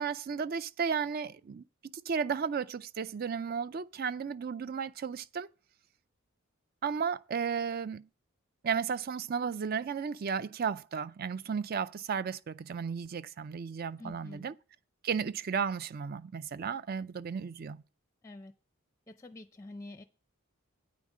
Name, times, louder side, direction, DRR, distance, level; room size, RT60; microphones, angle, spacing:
voice 1, 0.0-1.6 1.9-5.5 6.8-8.1 8.6-14.5 15.0-17.8, right 6 dB, 45° right, 0.4 m, -34 dB
voice 2, 14.0-14.5 18.2-18.5 19.1-20.0, left 2 dB, 15° left, 0.5 m, -47 dB
9.3 x 5.2 x 7.4 m
head